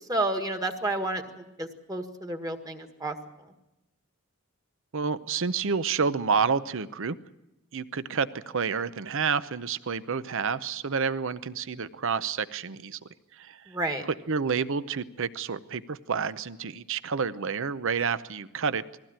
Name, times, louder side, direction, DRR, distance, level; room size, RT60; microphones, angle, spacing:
voice 1, 0.1-3.2 13.7-14.0, right 2 dB, 15° right, 5 dB, 1.7 m, -31 dB
voice 2, 4.9-7.2 7.7-13.0 13.4-13.6 14.3-18.8, right 5 dB, 60° right, 14 dB, 0.7 m, -29 dB
21.0 x 16.0 x 8.8 m, 0.96 s
head